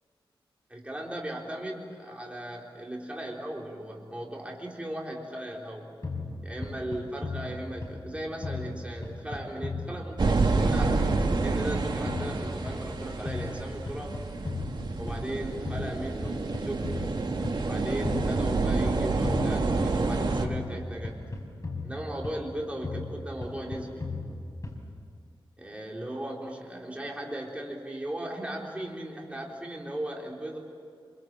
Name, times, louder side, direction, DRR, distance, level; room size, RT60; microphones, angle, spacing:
voice 1, 0.7-5.9 6.4-14.2 15.0-16.9 17.6-21.2 21.8-24.1 25.6-30.6, right 1 dB, 15° right, -2 dB, 3.9 m, -37 dB
sound 1, 6.0-8.1 8.4-10.6 10.9-13.0 13.3-15.4 15.7-17.6 18.0-20.1 20.4-22.5 22.8-25.0, left 3 dB, 35° left, 5.5 m, -36 dB
sound 2, 10.2-20.5, right 3 dB, 55° right, 2.5 m, -28 dB
26.5 x 24.0 x 7.6 m, 2.3 s
wide cardioid pair, 85°, 9 cm